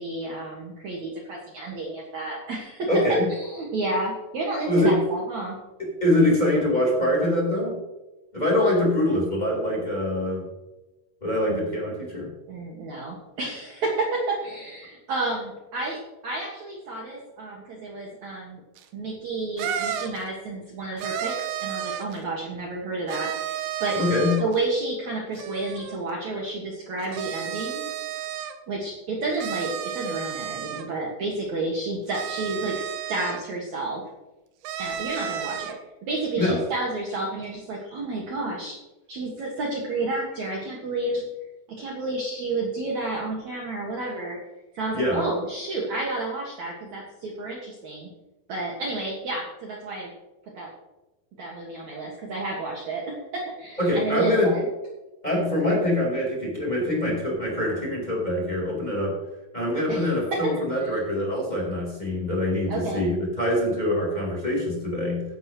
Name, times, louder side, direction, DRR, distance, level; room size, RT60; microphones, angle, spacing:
voice 1, 0.0-5.6 11.5-11.6 12.5-18.6 18.9-24.0 24.4-27.8 28.7-34.0 34.8-35.8 36.0-38.8 39.1-41.2 41.8-44.4 44.7-48.1 48.5-50.1 50.5-50.7 51.4-54.6 59.9-60.9 62.7-63.0, right 2 dB, 55° right, -2 dB, 2.6 m, -30 dB
voice 2, 2.9-3.2 4.7-5.0 5.8-7.8 8.3-10.4 11.2-12.3 23.9-24.3 36.4-36.6 44.9-45.2 53.8-54.5 55.2-59.2 59.5-65.2, left 1 dB, 10° left, -4 dB, 3.9 m, -24 dB
sound 1, 18.8-18.9 19.6-20.2 21.0-22.2 23.1-24.6 25.4-26.0 27.0-28.6 29.4-30.9 32.1-33.4 34.6-35.8, right 9 dB, 90° right, 3.2 m, -32 dB
15.0 x 11.5 x 3.1 m, 1.0 s
omnidirectional pair, 4.9 m